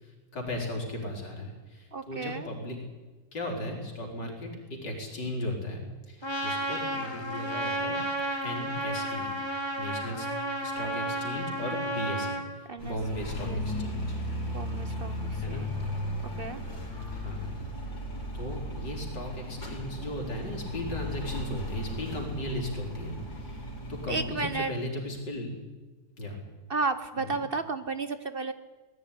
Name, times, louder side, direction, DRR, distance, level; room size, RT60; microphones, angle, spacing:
voice 1, 0.0-2.8 3.3-8.0 8.4-9.3 9.8-10.3 10.6-14.2 15.4-15.7 17.1-17.5 18.3-25.5 26.2-26.4 27.2-27.4, left 1 dB, 70° left, 1 dB, 4.8 m, -36 dB
voice 2, 1.9-2.5 12.7-13.0 13.4-13.6 14.5-15.1 15.5-15.7 16.4-16.6 24.1-24.7 26.7-28.5, right 4 dB, 45° right, 12 dB, 0.7 m, -32 dB
Trumpet, 6.2-12.4, right 1 dB, 15° left, 2.2 m, -32 dB
sound 1, 12.8-24.6, left 1 dB, 85° left, 5.0 m, -36 dB
19.0 x 14.5 x 10.0 m, 1.2 s
omnidirectional pair, 2.0 m